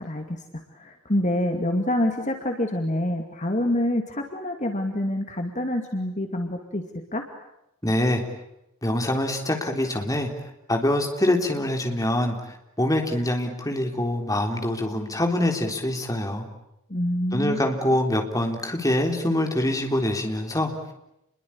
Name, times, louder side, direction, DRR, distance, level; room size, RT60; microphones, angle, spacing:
voice 1, 0.0-6.8 7.1-7.2 16.9-17.6, left 1 dB, 35° left, 4 dB, 2.5 m, -26 dB
voice 2, 7.8-8.2 8.8-16.4 17.3-20.7, left 1 dB, 15° left, 3 dB, 3.7 m, -25 dB
30.0 x 22.5 x 8.7 m, 0.85 s
head